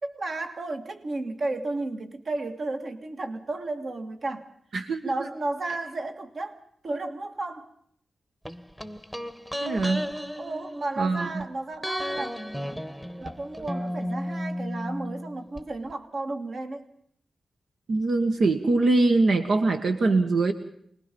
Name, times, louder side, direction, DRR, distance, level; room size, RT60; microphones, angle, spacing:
voice 1, 0.0-4.5 5.0-6.6 6.8-7.7 10.4-12.8 13.2-16.9, right 2 dB, 55° right, 6 dB, 2.1 m, -33 dB
voice 2, 4.7-5.1 9.6-10.0 11.0-11.3 17.9-20.5, right 3 dB, 80° right, 5 dB, 1.7 m, -23 dB
sound 1, 8.5-11.4 11.8-15.6 15.9-16.0, equal, 5° right, 1.2 m, -34 dB
26.0 x 20.5 x 5.4 m, 0.66 s
wide cardioid pair, 115°, 0 cm